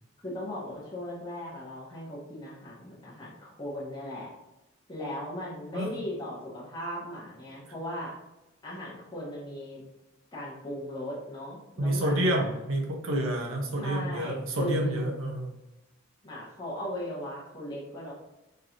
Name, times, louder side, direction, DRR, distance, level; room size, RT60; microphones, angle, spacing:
voice 1, 0.2-4.3 4.9-8.1 8.6-9.8 10.3-12.5 13.8-15.1 16.2-18.1, left 1 dB, 20° left, -7 dB, 1.0 m, -38 dB
voice 2, 11.8-15.5, right 1 dB, 75° right, 0 dB, 0.8 m, -28 dB
4.4 x 3.1 x 2.6 m, 0.97 s
head